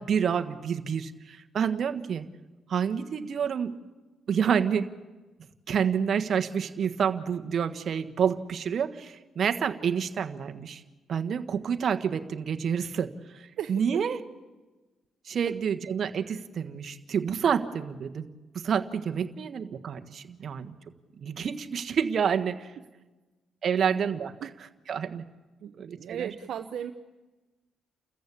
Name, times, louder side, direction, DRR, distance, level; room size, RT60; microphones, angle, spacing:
voice 1, 0.0-2.3 2.7-3.7 4.3-4.9 5.7-10.8 11.1-14.2 15.2-18.3 18.5-20.7 21.2-22.7 23.6-25.2 25.8-26.3, right 7 dB, 55° right, 8 dB, 1.5 m, -28 dB
voice 2, 13.6-14.0 15.5-15.6 24.4-24.5 25.6-25.7 26.0-26.9, right 9 dB, 70° right, 6 dB, 0.9 m, -35 dB
30.0 x 14.5 x 8.6 m, 1.2 s
cardioid pair, 90°, 0 cm